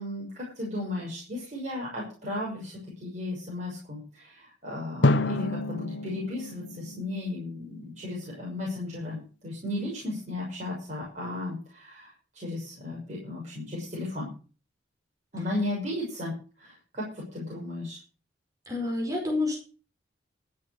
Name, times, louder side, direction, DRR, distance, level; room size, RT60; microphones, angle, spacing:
voice 1, 0.0-14.3 15.3-16.3 16.6-18.0, left 1 dB, 40° right, -3 dB, 6.4 m, -35 dB
Drum, 5.0-7.9, left 2 dB, 75° left, 0.9 m, -28 dB
voice 2, 18.7-19.6, left 2 dB, 20° right, 0 dB, 5.0 m, -28 dB
13.5 x 9.5 x 6.4 m, 0.37 s
head